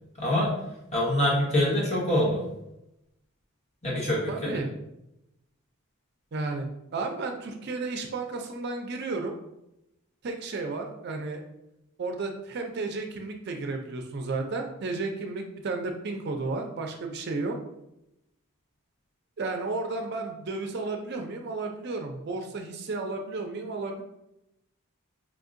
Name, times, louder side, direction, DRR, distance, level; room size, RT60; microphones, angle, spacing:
voice 1, 0.2-0.5 0.9-2.4 3.8-4.6, left 1 dB, 30° left, -6 dB, 1.2 m, -25 dB
voice 2, 4.3-4.7 6.3-9.3 10.2-11.4 12.0-17.6 19.4-24.0, right 3 dB, 50° right, 4 dB, 0.4 m, -33 dB
4.9 x 2.6 x 2.5 m, 0.87 s
head